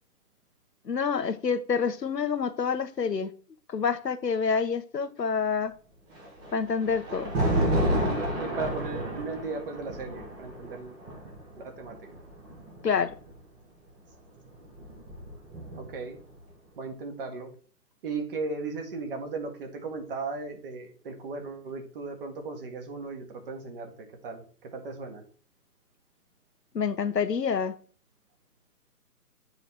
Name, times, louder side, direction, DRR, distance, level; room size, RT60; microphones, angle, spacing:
voice 1, 0.8-3.3 3.7-5.7 6.5-7.3 12.8-13.1 26.7-27.7, left 6 dB, 90° left, 10 dB, 1.0 m, -27 dB
Thunder, 6.1-13.3 14.4-16.1, right 1 dB, 10° right, 0.9 m, -31 dB
voice 2, 8.4-11.0 11.6-12.1 15.8-16.2 16.8-17.5 18.0-23.9 24.2-25.2, right 3 dB, 35° right, 5 dB, 1.6 m, -36 dB
9.0 x 3.9 x 4.4 m, 0.43 s
figure-of-eight pair, 145°, 48 cm